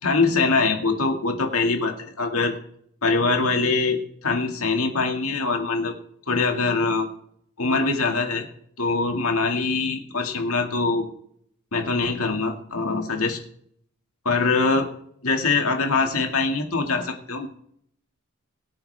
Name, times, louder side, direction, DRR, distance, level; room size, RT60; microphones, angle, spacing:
voice 1, 0.0-2.5 3.0-5.9 6.3-7.1 7.6-8.5 8.8-11.1 11.7-13.4 14.3-14.9 15.2-17.5, left 3 dB, 70° left, 4 dB, 2.0 m, -23 dB
22.0 x 8.8 x 3.4 m, 0.68 s
head